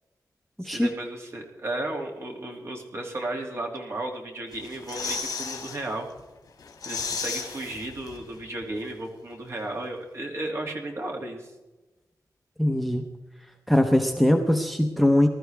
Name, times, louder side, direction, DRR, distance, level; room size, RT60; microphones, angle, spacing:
voice 1, 0.6-6.1 6.8-11.5, right 2 dB, 40° right, 2 dB, 2.4 m, -34 dB
sound 1, 4.5-5.8 6.2-6.3 6.6-8.4 8.6-8.7, left 5 dB, 65° left, 2.4 m, -34 dB
voice 2, 12.6-13.0 13.7-15.3, left 1 dB, ahead, 5 dB, 0.9 m, -21 dB
20.0 x 13.0 x 3.4 m, 1.1 s
wide cardioid pair, 155°, 7 cm